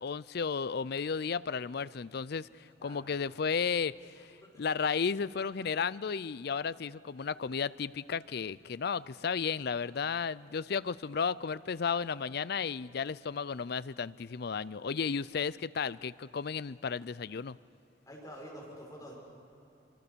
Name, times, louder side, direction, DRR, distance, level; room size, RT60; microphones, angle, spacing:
voice 1, 0.0-2.5 2.8-4.3 4.6-17.6, left 6 dB, 55° left, 18 dB, 0.5 m, -33 dB
voice 2, 4.2-4.7 18.1-19.1, equal, 20° left, -3 dB, 6.0 m, -48 dB
25.5 x 25.0 x 6.9 m, 2.8 s
head